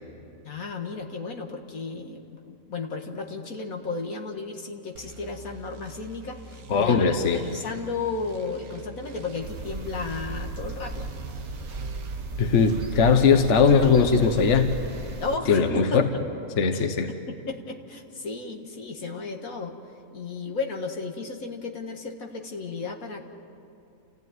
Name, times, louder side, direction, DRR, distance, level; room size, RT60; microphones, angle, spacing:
voice 1, 0.4-11.1 15.2-16.0 16.7-16.8 17.3-19.8 20.1-23.2, left 4 dB, 80° left, 3 dB, 2.1 m, -34 dB
sound 1, 4.9-12.8, right 3 dB, 85° right, 1.5 m, -46 dB
voice 2, 6.7-7.4 12.4-14.8 15.5-16.0 16.6-17.1, left 5 dB, 55° left, 6 dB, 1.4 m, -20 dB
sound 2, 9.4-15.4, right 3 dB, 65° right, 1.9 m, -35 dB
29.5 x 15.5 x 9.3 m, 2.6 s
omnidirectional pair, 1.5 m